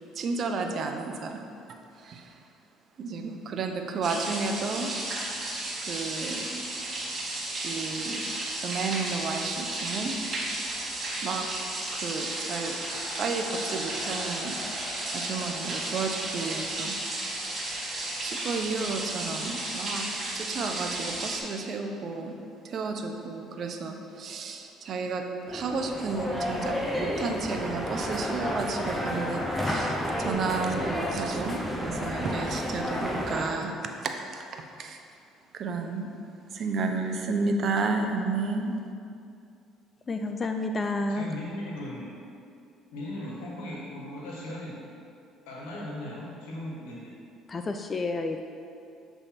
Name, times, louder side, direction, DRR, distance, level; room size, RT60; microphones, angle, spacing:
voice 1, 0.1-1.4 1.9-2.4 3.0-5.0 5.8-6.6 7.6-8.3 8.6-10.2 11.2-11.5 11.9-12.8 13.2-14.6 15.1-17.0 18.2-20.1 20.3-22.4 22.6-35.0 35.5-36.1 36.5-38.8, right 4 dB, 55° right, 4 dB, 0.6 m, -32 dB
sound 1, 4.0-21.4, right 2 dB, 35° right, 1.4 m, -33 dB
sound 2, 10.9-22.4, left 1 dB, 65° left, 1.2 m, -46 dB
sound 3, 25.5-33.4, equal, 10° left, 0.9 m, -31 dB
voice 2, 40.1-41.3 47.5-48.4, left 2 dB, 30° left, 5 dB, 0.3 m, -30 dB
voice 3, 41.1-42.1 42.9-44.8 45.4-47.1, left 1 dB, 90° left, -4 dB, 1.3 m, -38 dB
7.1 x 3.4 x 4.2 m, 2.5 s
supercardioid pair, 85°, 0 cm